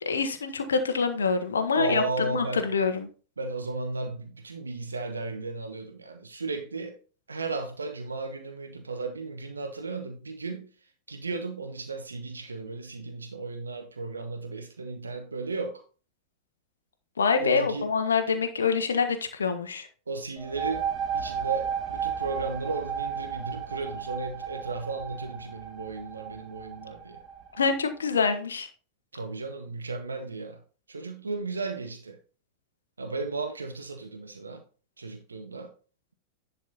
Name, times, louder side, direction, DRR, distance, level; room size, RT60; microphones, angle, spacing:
voice 1, 0.0-3.1 17.2-19.9 27.6-28.7, left 5 dB, 70° left, 1.1 m, -26 dB
voice 2, 1.7-2.7 3.4-7.0 7.3-10.7 11.1-15.8 17.4-17.9 20.1-20.9 21.1-27.2 29.1-30.6 30.9-32.2 33.0-34.6 35.0-35.7, right 3 dB, 75° right, 1.1 m, -35 dB
sound 1, 20.4-27.8, right 8 dB, 20° right, 2.7 m, -34 dB
10.5 x 4.2 x 4.1 m
figure-of-eight pair, 90°, 0 cm